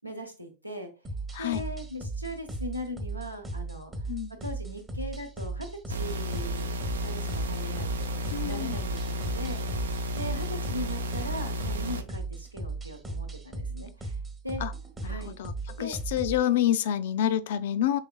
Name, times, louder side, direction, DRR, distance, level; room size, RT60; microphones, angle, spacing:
voice 1, 0.0-0.9 1.4-4.1 4.4-6.7 7.0-9.9 10.2-14.2 14.4-14.6 15.0-15.4 15.8-15.9, equal, 90° right, 0.9 m, -39 dB
sound 1, 1.0-16.4, right 3 dB, 15° right, 0.8 m, -36 dB
sound 2, 5.9-12.0, equal, 65° right, 0.4 m, -32 dB
voice 2, 8.3-8.8 14.6-14.7 15.0-15.5 15.8-18.0, left 11 dB, 55° left, 0.4 m, -27 dB
5.7 x 3.4 x 2.2 m
figure-of-eight pair, 90°, 0 cm